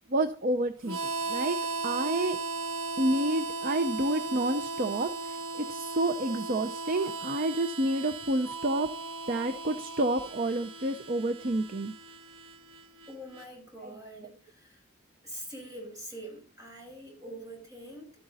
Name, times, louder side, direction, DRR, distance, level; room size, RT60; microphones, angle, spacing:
voice 1, 0.1-1.0 1.3-1.6 1.8-2.4 3.0-8.9 9.3-11.9 13.8-13.9, right 1 dB, 45° right, 9 dB, 0.6 m, -29 dB
Harmonica, 0.8-13.5, right 4 dB, 85° right, 1.5 m, -37 dB
voice 2, 13.1-14.8 15.2-18.1, right 1 dB, 15° right, -1 dB, 5.3 m, -44 dB
12.5 x 8.9 x 4.1 m, 0.41 s
head